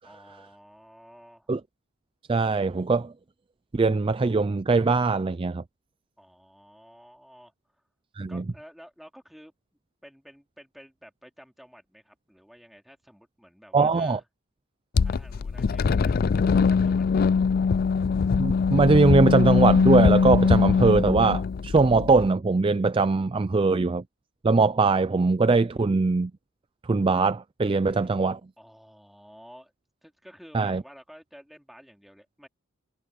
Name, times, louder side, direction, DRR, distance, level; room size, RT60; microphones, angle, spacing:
voice 1, 0.0-1.5 6.2-7.8 8.3-9.5 10.0-14.2 15.0-17.2 27.9-28.1 28.6-29.7 30.0-32.5, equal, ahead, 3.2 m, -51 dB
voice 2, 2.3-3.1 3.7-5.6 8.2-8.4 13.7-14.2 18.4-24.0 24.4-26.3 26.8-28.4 30.5-30.8, right 3 dB, 25° right, 0.4 m, -21 dB
sound 1, 15.0-22.3, left 5 dB, 45° left, 0.4 m, -22 dB
head